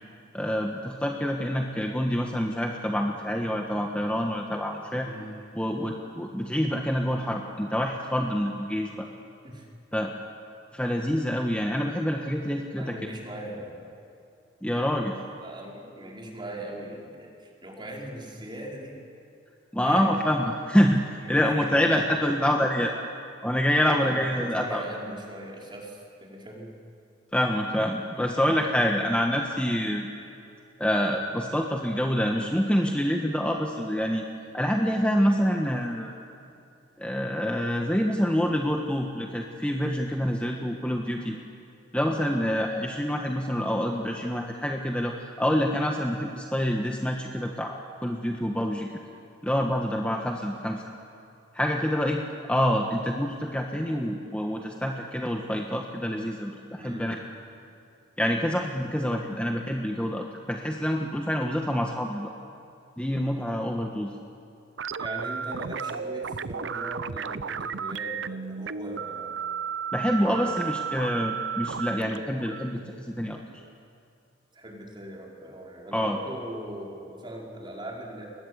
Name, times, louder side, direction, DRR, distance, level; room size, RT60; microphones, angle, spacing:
voice 1, 0.3-5.1 5.5-9.1 9.9-10.1 10.7-13.0 14.6-15.2 19.7-22.9 23.4-24.8 27.3-30.1 30.8-34.2 34.5-36.1 37.0-41.4 41.9-48.9 49.4-50.8 51.5-52.2 52.5-57.2 58.2-62.3 63.0-64.1 69.9-73.4 75.9-76.2, equal, 5° left, 1 dB, 1.4 m, -26 dB
voice 2, 12.8-13.9 15.4-19.0 19.7-20.2 21.2-22.0 24.0-26.8 56.8-57.2 65.0-69.4 70.2-70.7 74.5-78.3, right 1 dB, 25° right, -2 dB, 5.1 m, -40 dB
sound 1, 64.8-73.7, right 7 dB, 90° right, 0.7 m, -34 dB
30.0 x 22.0 x 8.2 m, 2.7 s
head